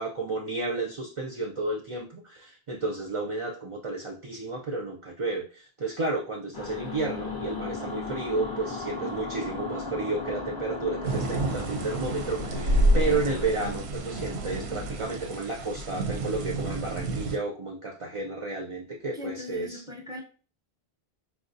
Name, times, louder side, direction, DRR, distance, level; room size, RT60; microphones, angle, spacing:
voice 1, 0.0-19.8, right 3 dB, 55° right, 0.3 m, -32 dB
sound 1, 6.5-13.5, left 3 dB, 40° left, 0.3 m, -36 dB
sound 2, 11.0-17.4, right 1 dB, 90° right, 0.8 m, -29 dB
voice 2, 19.1-20.2, left 3 dB, 5° right, 0.6 m, -39 dB
4.6 x 2.1 x 2.6 m
omnidirectional pair, 1.1 m